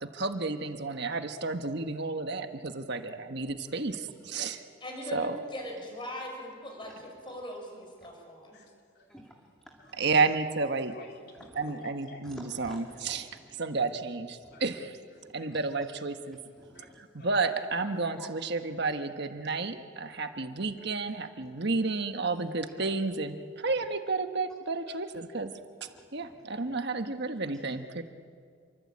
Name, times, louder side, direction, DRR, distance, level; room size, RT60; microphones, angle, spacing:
voice 1, 0.0-4.6 5.1-5.4 10.0-10.9 11.6-13.2 13.6-14.9 15.3-16.4 17.1-25.5 26.1-28.0, right 3 dB, 55° right, 7 dB, 1.4 m, -31 dB
voice 2, 4.8-8.6, equal, 25° left, 2 dB, 5.8 m, -40 dB
voice 3, 8.5-9.1 9.8-9.9 10.9-12.3 14.5-14.7 15.1-15.5 16.7-16.9 17.2-17.5 17.9-18.0 24.9-25.2, left 3 dB, 50° left, 1 dB, 4.0 m, -52 dB
voice 4, 9.1-10.0 11.3-11.7 12.2-13.6 14.4-14.8 15.2-15.6 16.5-17.0 18.2-18.3 19.4-19.5 20.1-20.2 21.6-21.7 22.8-22.9 23.6-23.8 25.9-26.8, equal, 5° left, 0 dB, 2.0 m, -52 dB
28.5 x 24.0 x 8.7 m, 2.1 s
head